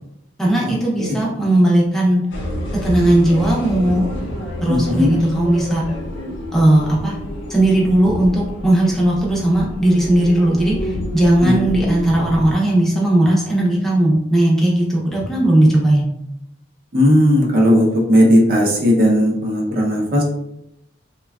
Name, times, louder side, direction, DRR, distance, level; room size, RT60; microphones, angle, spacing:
voice 1, 0.4-2.2 2.8-4.0 4.6-5.8 6.5-7.2 7.5-16.1, right 1 dB, ahead, -4 dB, 0.6 m, -16 dB
sound 1, 2.3-12.5, left 1 dB, 70° left, 0.6 m, -29 dB
voice 2, 4.7-5.1 11.4-11.6 16.9-20.2, equal, 50° right, -2 dB, 0.7 m, -15 dB
3.2 x 2.2 x 2.3 m, 0.82 s
head